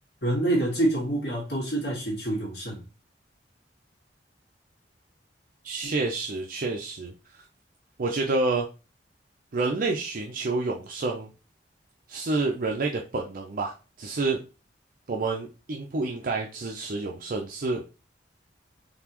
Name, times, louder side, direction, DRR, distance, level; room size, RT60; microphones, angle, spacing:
voice 1, 0.2-2.8, right 1 dB, 65° left, -3 dB, 2.1 m, -26 dB
voice 2, 5.6-7.4 8.0-8.7 9.5-11.3 12.1-14.4 15.1-17.8, right 3 dB, 50° right, 1 dB, 0.5 m, -29 dB
4.0 x 3.4 x 2.9 m, 0.31 s
head